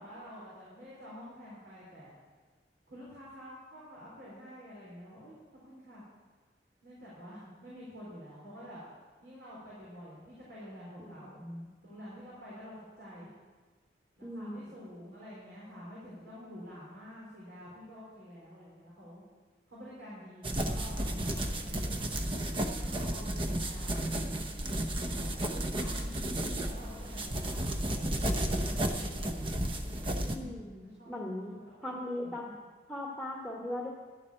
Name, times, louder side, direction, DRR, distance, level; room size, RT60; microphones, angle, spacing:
voice 1, 0.0-2.1 2.9-6.0 6.8-8.8 9.2-11.4 11.8-13.3 14.2-19.2 19.7-22.1 22.7-24.0 25.0-29.6 30.3-32.0 32.2-32.3, equal, 85° right, -8 dB, 4.2 m, -49 dB
voice 2, 11.0-11.7 14.2-14.6 21.0-21.6 30.2-31.6 31.8-32.4 32.9-33.9, left 1 dB, ahead, -3 dB, 1.5 m, -39 dB
sound 1, 20.4-30.4, right 1 dB, 30° right, 0.8 m, -33 dB
12.0 x 7.3 x 8.6 m, 1.4 s
head